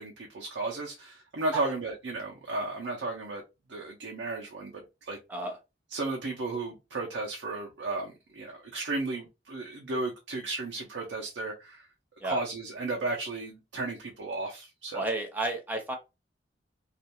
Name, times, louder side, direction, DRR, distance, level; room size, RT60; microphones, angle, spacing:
voice 1, 0.0-3.4 3.7-5.2 5.9-11.8 12.2-15.0, right 2 dB, 80° right, 0.6 m, -34 dB
voice 2, 14.9-16.0, right 2 dB, 10° right, 0.6 m, -32 dB
2.4 x 2.2 x 2.7 m
head